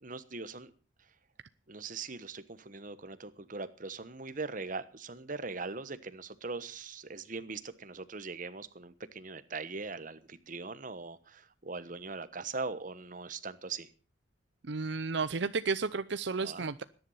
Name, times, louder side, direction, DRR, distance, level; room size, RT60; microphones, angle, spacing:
voice 1, 0.0-0.7 1.7-13.9 16.4-16.7, right 4 dB, 45° right, 1.2 m, -41 dB
voice 2, 14.7-16.8, right 4 dB, 65° right, 0.7 m, -32 dB
20.0 x 11.0 x 5.7 m
head